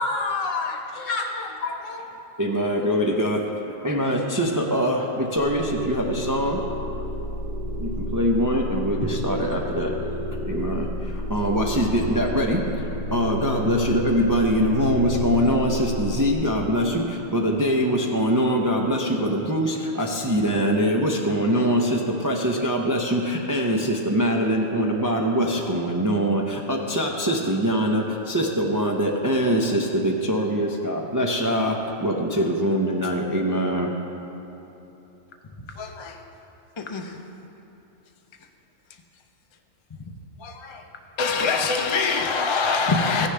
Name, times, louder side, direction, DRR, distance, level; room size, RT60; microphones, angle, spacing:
voice 1, 0.0-2.0, left 3 dB, 70° left, 1.3 m, -28 dB
voice 2, 2.4-3.5 3.8-6.6 7.8-10.0 10.4-34.0, equal, 25° right, 0.5 m, -23 dB
sound 1, 5.3-16.3, left 1 dB, 50° right, 2.1 m, -30 dB
voice 3, 35.6-36.2 36.8-37.2 40.0-40.8 41.2-43.3, left 4 dB, 35° left, 0.5 m, -25 dB
15.0 x 9.6 x 3.4 m
omnidirectional pair, 1.3 m